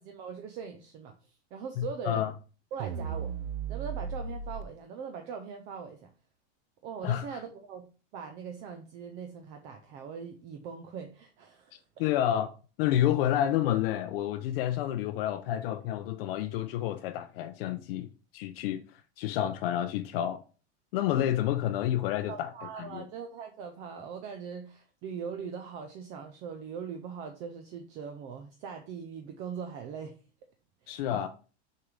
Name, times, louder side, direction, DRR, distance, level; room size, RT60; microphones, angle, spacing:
voice 1, 0.0-2.3 2.7-3.3 3.7-6.1 6.8-7.9 8.1-12.1 22.3-30.2 30.8-31.3, right 6 dB, 20° right, 0.3 m, -41 dB
voice 2, 1.8-2.3 7.0-7.3 12.0-12.5 12.8-18.1 18.3-18.8 19.2-20.4 20.9-22.5 22.8-23.0 30.9-31.3, left 11 dB, 55° left, 0.6 m, -29 dB
sound 1, 2.8-4.6, right 6 dB, 55° right, 0.6 m, -35 dB
6.5 x 4.6 x 3.7 m
supercardioid pair, 170°, 35 cm